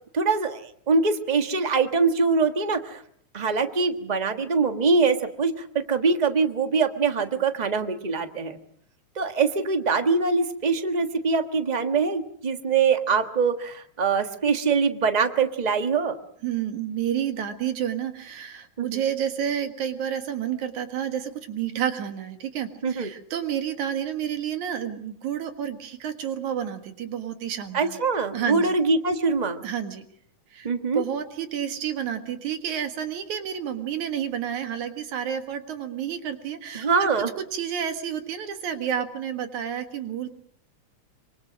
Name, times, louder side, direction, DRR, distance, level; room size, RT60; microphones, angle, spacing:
voice 1, 0.1-3.0 3.3-5.5 5.9-8.6 9.2-16.2 18.8-19.0 22.8-23.1 27.7-29.6 30.6-31.0 36.7-37.3, right 4 dB, 40° right, 7 dB, 0.5 m, -23 dB
voice 2, 16.4-28.0 28.3-28.7 29.6-30.0 30.5-37.1 37.4-40.3, right 9 dB, 75° right, 7 dB, 3.0 m, -30 dB
25.5 x 24.5 x 6.3 m, 0.63 s
omnidirectional pair, 3.4 m